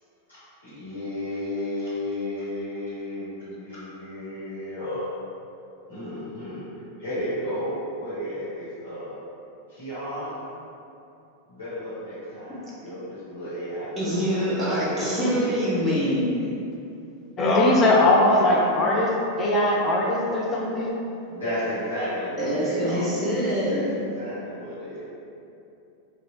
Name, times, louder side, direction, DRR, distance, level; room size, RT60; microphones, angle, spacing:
voice 1, 0.3-5.1 5.9-6.6 7.0-9.2 9.7-10.4 11.5-15.7 17.4-17.9 21.3-23.0 23.6-25.0, left 1 dB, 75° left, -15 dB, 1.3 m, -33 dB
voice 2, 14.0-16.3 22.4-23.9, equal, 5° right, -8 dB, 0.7 m, -25 dB
voice 3, 17.4-19.1 19.4-20.9, left 1 dB, 25° left, -3 dB, 0.4 m, -20 dB
3.1 x 2.3 x 2.5 m, 2.7 s
figure-of-eight pair, 90°, 0 cm